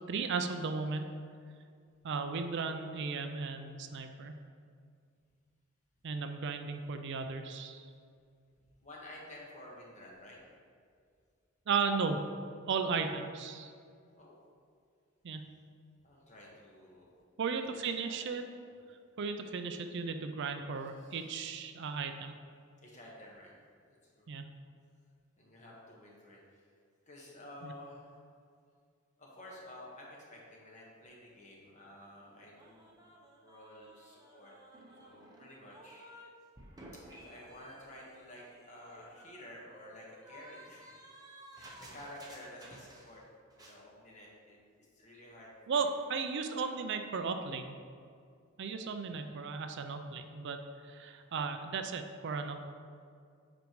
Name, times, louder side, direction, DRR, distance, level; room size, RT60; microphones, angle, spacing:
voice 1, 0.1-1.1 2.0-4.4 6.0-7.9 11.7-12.3 12.7-13.7 15.2-15.5 17.4-18.4 19.2-22.4 24.3-24.4 27.6-27.7 45.7-47.8 48.6-52.7, right 5 dB, 55° right, 7 dB, 0.4 m, -35 dB
voice 2, 8.8-10.4 14.2-14.3 16.0-17.1 17.6-18.2 18.6-18.7 21.0-21.3 22.8-23.5 23.9-24.3 25.4-26.6 27.1-28.2 29.2-33.0 33.4-34.5 35.0-36.1 37.1-41.0 41.5-43.2 43.5-45.9 46.3-46.7 49.0-49.2, left 1 dB, 35° left, -3 dB, 1.4 m, -52 dB
sound 1, 32.6-36.3 36.6-43.3 43.5-43.8, right 1 dB, 20° right, 0.8 m, -55 dB
8.3 x 5.1 x 3.1 m, 2.2 s
head